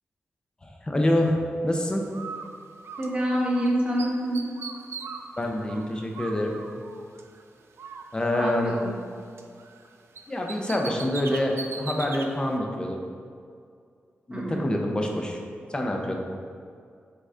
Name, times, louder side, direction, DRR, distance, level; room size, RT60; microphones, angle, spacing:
voice 1, 0.6-1.4 1.6-2.0 5.4-6.6 8.1-8.7 10.3-13.0 14.3-15.4 15.7-16.1, left 1 dB, 20° left, 1 dB, 0.7 m, -26 dB
Bird, 2.1-3.7 4.0-7.4 7.8-9.9 10.2-12.3, right 5 dB, 80° right, 0.4 m, -40 dB
voice 2, 3.0-4.4 8.3-8.9 14.3-14.6, equal, 25° right, -4 dB, 1.2 m, -26 dB
6.6 x 4.1 x 3.7 m, 2.3 s
wide cardioid pair, 135°, 4 cm